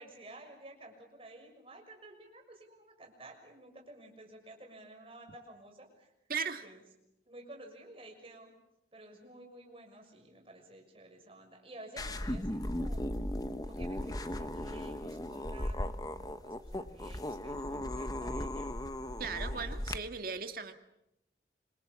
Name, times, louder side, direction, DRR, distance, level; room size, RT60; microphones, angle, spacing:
voice 1, 0.0-6.1 6.5-6.8 7.3-8.5 8.9-13.1 13.6-18.7 19.3-20.1, right 1 dB, 30° right, 2 dB, 6.3 m, -53 dB
voice 2, 6.3-6.6 19.2-20.7, right 5 dB, 55° right, 7 dB, 2.0 m, -37 dB
sound 1, 12.0-20.0, left 1 dB, 20° left, 1.1 m, -37 dB
27.0 x 26.0 x 7.4 m, 0.84 s
head